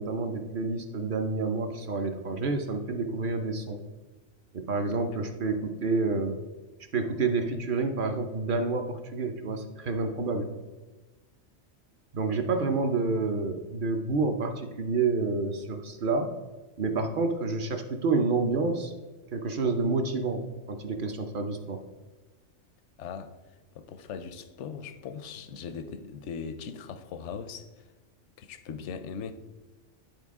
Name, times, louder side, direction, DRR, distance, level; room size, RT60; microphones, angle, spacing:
voice 1, 0.0-3.8 4.5-6.4 6.9-10.5 12.1-16.3 16.8-18.9 19.3-21.8, right 3 dB, 55° right, 0.7 m, -29 dB
voice 2, 23.0-23.3 23.7-27.8 28.4-29.3, left 6 dB, 85° left, 0.9 m, -39 dB
11.0 x 4.2 x 3.6 m
omnidirectional pair, 1.2 m